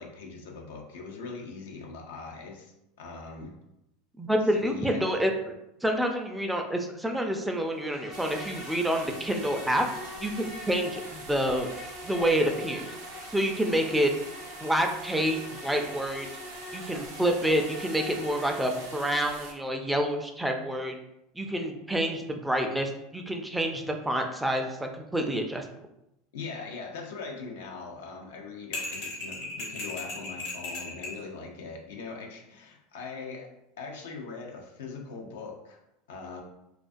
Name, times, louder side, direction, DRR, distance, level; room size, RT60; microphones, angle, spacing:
voice 1, 0.0-3.5 4.5-5.3 26.3-33.5 33.8-35.8 36.1-36.4, left 4 dB, 80° left, 2 dB, 0.4 m, -41 dB
voice 2, 4.2-5.3 5.8-9.9 10.2-11.7 12.0-12.9 13.3-14.1 14.6-16.3 16.7-20.9 21.4-25.6, equal, 5° right, 3 dB, 0.3 m, -28 dB
Insect, 7.8-19.2, left 2 dB, 35° left, 0.6 m, -44 dB
sound 1, 8.1-19.5, right 3 dB, 85° right, 0.5 m, -45 dB
sound 2, 28.7-31.2, left 2 dB, 65° left, 1.2 m, -36 dB
2.4 x 2.2 x 2.5 m, 0.86 s
hypercardioid pair, 90°, 0 cm